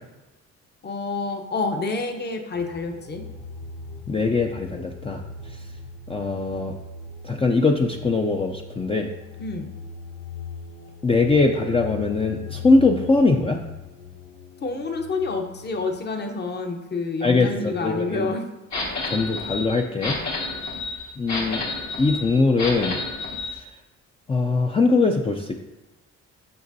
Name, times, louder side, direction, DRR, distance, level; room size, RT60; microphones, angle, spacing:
voice 1, 0.8-3.2 9.4-9.7 14.6-18.5, left 3 dB, 35° left, 4 dB, 0.9 m, -28 dB
sound 1, 2.5-16.0, left 5 dB, 80° left, 0.7 m, -39 dB
voice 2, 4.1-5.2 6.1-6.7 7.2-9.1 11.0-13.6 17.2-18.3 19.0-20.2 21.2-21.6 22.0-23.0 23.5-23.6 24.3-25.5, left 3 dB, 20° left, 2 dB, 0.5 m, -21 dB
sound 2, 18.7-23.5, left 3 dB, 60° left, 1.7 m, -30 dB
7.9 x 6.0 x 2.7 m, 1.1 s
cardioid pair, 90°, 30 cm